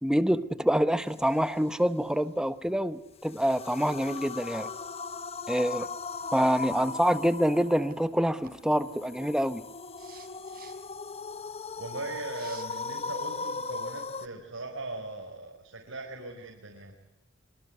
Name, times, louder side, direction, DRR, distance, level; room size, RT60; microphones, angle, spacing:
voice 1, 0.0-4.7 5.5-5.9 6.3-9.6, equal, 5° right, 1.1 m, -26 dB
sound 1, 3.2-14.3, left 4 dB, 30° left, 0.9 m, -38 dB
sound 2, 7.8-8.1 8.4-8.6 10.0-10.8 12.3-12.6, right 7 dB, 50° right, 4.0 m, -51 dB
voice 2, 11.8-17.0, right 2 dB, 85° right, 5.2 m, -39 dB
25.5 x 24.0 x 9.5 m
head